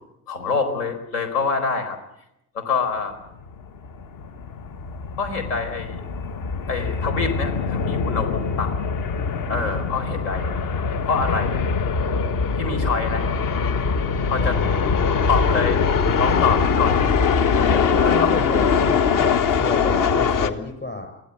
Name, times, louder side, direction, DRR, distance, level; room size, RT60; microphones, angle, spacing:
voice 1, 0.3-2.0 2.5-3.2 5.2-6.0 6.7-8.8 9.5-10.6 11.1-11.6 12.5-13.3 14.3-14.6 15.3-15.8 16.2-17.2 17.6-18.9, left 5 dB, 70° left, 7 dB, 4.5 m, -26 dB
sound 1, 3.4-20.5, left 5 dB, 45° left, 1.6 m, -22 dB
voice 2, 17.5-21.1, left 3 dB, 20° left, 5 dB, 7.4 m, -30 dB
24.5 x 17.0 x 8.0 m, 0.81 s
figure-of-eight pair, 60°, 47 cm